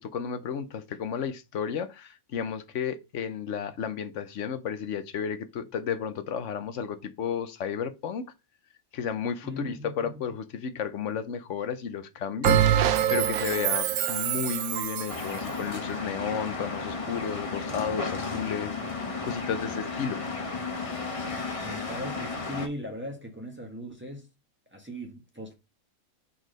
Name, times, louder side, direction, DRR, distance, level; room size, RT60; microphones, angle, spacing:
voice 1, 0.0-8.2 8.9-20.2, left 7 dB, 65° left, 1.0 m, -33 dB
voice 2, 9.4-10.1 21.6-24.3 24.7-25.6, equal, 10° right, 1.5 m, -38 dB
Bell, 12.4-15.2, right 10 dB, 80° right, 1.1 m, -24 dB
sound 1, 15.1-22.7, left 3 dB, 25° left, 0.9 m, -34 dB
4.7 x 4.2 x 5.1 m
omnidirectional pair, 1.5 m